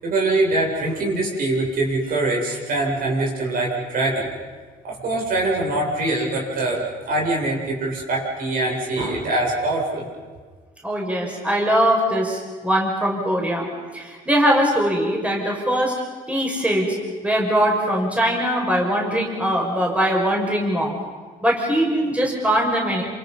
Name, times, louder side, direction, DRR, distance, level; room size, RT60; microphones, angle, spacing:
voice 1, 0.0-4.3 4.8-10.0, right 2 dB, 60° right, -2 dB, 7.8 m, -23 dB
voice 2, 10.8-13.7 13.9-15.9 16.3-17.0 17.2-21.0 21.4-23.0, equal, 10° right, -1 dB, 6.0 m, -21 dB
29.0 x 27.5 x 5.7 m, 1.5 s
cardioid pair, 110°, 17 cm